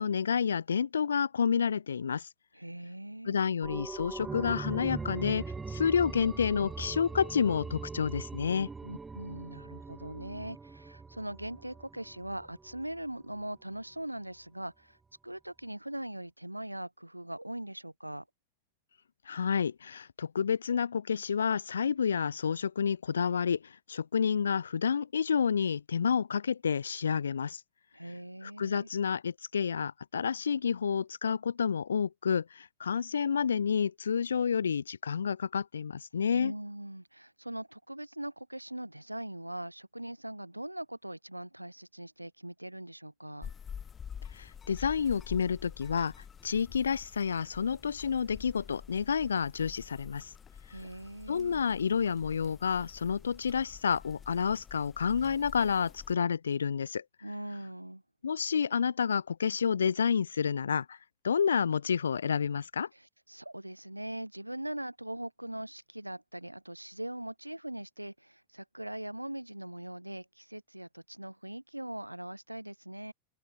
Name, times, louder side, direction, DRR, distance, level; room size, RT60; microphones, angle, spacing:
voice 1, 0.0-2.3 3.3-8.7 19.3-27.6 28.4-36.5 44.3-46.1 46.4-50.3 51.3-57.0 58.2-61.0 61.2-62.9, left 6 dB, 70° left, 0.5 m, -29 dB
voice 2, 2.5-3.4 8.8-15.0 15.2-18.2 27.9-28.9 36.3-43.5 50.7-51.6 57.2-58.0 62.9-73.1, right 1 dB, 85° right, 2.3 m, -41 dB
sound 1, 3.6-13.0 13.3-13.4, right 4 dB, 10° right, 0.8 m, -41 dB
sound 2, 43.4-56.1, left 7 dB, 20° left, 3.4 m, -48 dB
open air
figure-of-eight pair, 90°, 0 cm